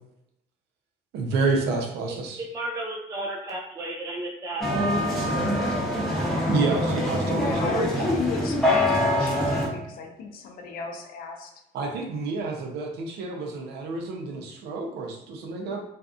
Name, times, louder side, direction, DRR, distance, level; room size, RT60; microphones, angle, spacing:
voice 1, 1.1-2.4 6.5-8.0 11.7-15.8, right 4 dB, 75° right, 2 dB, 0.6 m, -29 dB
voice 2, 2.4-4.6 6.2-6.5, right 2 dB, 20° right, -1 dB, 0.3 m, -33 dB
sound 1, 4.6-9.7, left 1 dB, ahead, 0.7 m, -24 dB
voice 3, 7.2-11.5, left 5 dB, 60° left, 2 dB, 0.6 m, -35 dB
2.5 x 2.3 x 2.4 m, 0.81 s
cardioid pair, 110°, 17 cm